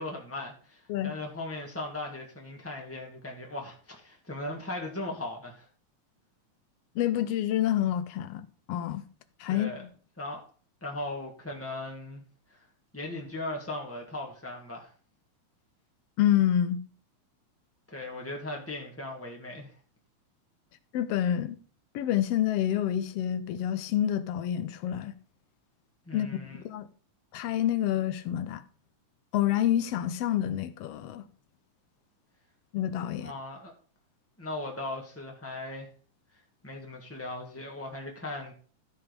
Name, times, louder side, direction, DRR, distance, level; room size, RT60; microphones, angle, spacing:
voice 1, 0.0-5.7 9.5-9.8 10.2-10.4 10.8-12.2 12.5-12.7 12.9-14.9 17.9-19.8 26.1-26.6 33.2-33.7 34.4-35.9 36.3-38.5, left 2 dB, 10° left, 0.6 m, -38 dB
voice 2, 6.9-9.1 9.4-9.9 16.2-16.8 20.9-21.6 21.9-25.1 26.1-26.9 27.3-28.6 29.3-31.2 32.7-33.3, left 11 dB, 75° left, 1.4 m, -28 dB
13.5 x 4.9 x 5.3 m
omnidirectional pair, 3.5 m